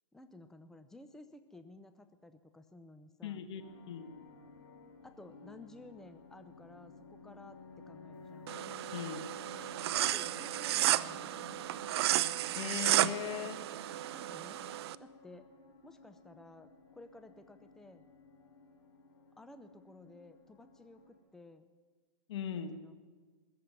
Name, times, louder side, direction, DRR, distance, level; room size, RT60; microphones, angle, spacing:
voice 1, 0.1-3.5 5.0-8.6 9.9-11.4 14.1-14.6 15.0-15.5 15.8-18.1 19.4-21.7 22.5-22.9, left 2 dB, 5° left, 9 dB, 0.7 m, -54 dB
voice 2, 3.2-3.6 3.9-4.1 8.9-9.3 12.5-13.6 22.3-22.8, left 9 dB, 65° left, 9 dB, 1.4 m, -39 dB
sound 1, 3.6-21.2, left 3 dB, 85° left, 4.5 m, -54 dB
sound 2, 8.5-14.9, right 14 dB, 55° right, 0.5 m, -33 dB
20.5 x 7.6 x 9.4 m, 1.4 s
hypercardioid pair, 125°, 16 cm